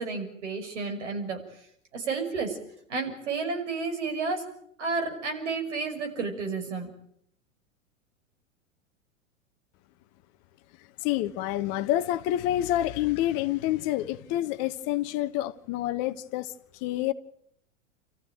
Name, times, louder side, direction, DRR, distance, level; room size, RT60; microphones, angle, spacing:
voice 1, 0.0-1.4 1.9-2.6 2.9-4.4 4.8-6.9, right 4 dB, 65° right, 6.2 m, -31 dB
voice 2, 11.0-17.1, left 13 dB, 40° left, 1.3 m, -28 dB
30.0 x 15.0 x 9.1 m
figure-of-eight pair, 90°, 38 cm